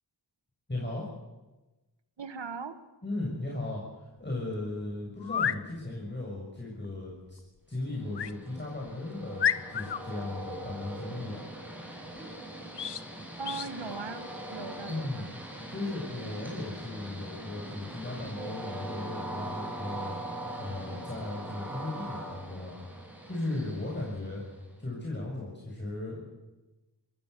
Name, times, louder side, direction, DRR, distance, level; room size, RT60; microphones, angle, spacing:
voice 1, 0.7-1.1 3.0-7.4 7.7-11.5 14.9-15.3 15.7-20.1 20.6-22.8 23.3-24.4 24.8-26.3, left 2 dB, 25° left, -3 dB, 7.0 m, -36 dB
voice 2, 2.2-2.8 13.4-15.3, right 4 dB, 80° right, 10 dB, 1.7 m, -39 dB
sound 1, 5.2-5.6 8.1-8.4 8.9-9.0 9.4-10.0 12.7-13.0 13.4-13.7, left 8 dB, 70° left, 0.9 m, -30 dB
Train, 8.0-24.7, right 1 dB, 5° right, 7.4 m, -41 dB
23.5 x 20.0 x 7.0 m, 1.1 s
cardioid pair, 50°, 43 cm